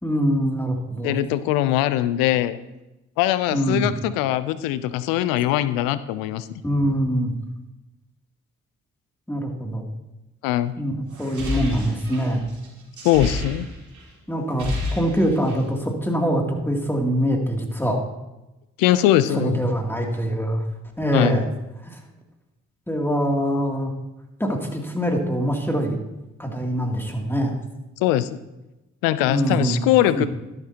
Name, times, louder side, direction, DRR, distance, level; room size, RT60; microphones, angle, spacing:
voice 1, 0.0-1.2 3.5-3.9 6.6-7.3 9.3-9.9 10.8-12.4 14.3-18.0 19.3-20.6 21.0-21.5 21.8-22.0 22.9-23.9 24.4-26.0 26.4-27.6 29.3-30.3, equal, 5° left, 1 dB, 2.8 m, -24 dB
voice 2, 1.0-2.6 3.2-6.5 10.4-10.7 13.0-13.7 18.8-19.6 21.1-21.4 28.0-28.3 29.0-30.3, left 13 dB, 90° left, 15 dB, 0.5 m, -21 dB
sound 1, 11.1-14.0 14.3-15.7, left 1 dB, 60° right, 3.8 m, -30 dB
12.0 x 11.5 x 2.9 m, 0.98 s
hypercardioid pair, 50°, 33 cm